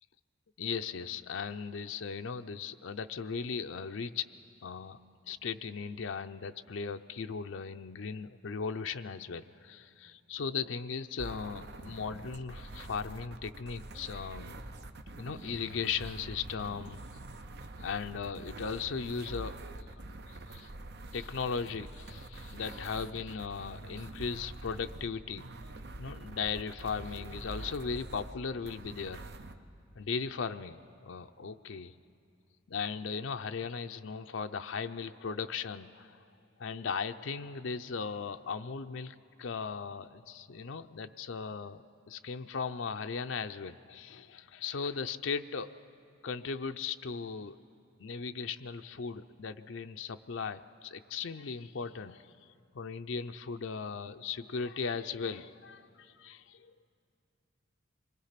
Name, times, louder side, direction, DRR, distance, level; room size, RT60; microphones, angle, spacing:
voice 1, 0.6-4.3 4.6-14.6 15.2-17.0 17.8-19.5 20.3-20.7 21.1-25.5 26.0-29.3 30.0-32.0 32.7-36.2 36.6-45.7 46.2-47.6 48.0-56.7, left 5 dB, 70° left, 7 dB, 0.5 m, -37 dB
sound 1, 11.2-29.5, right 2 dB, 55° right, 0.8 m, -45 dB
26.5 x 22.0 x 5.8 m, 2.6 s
head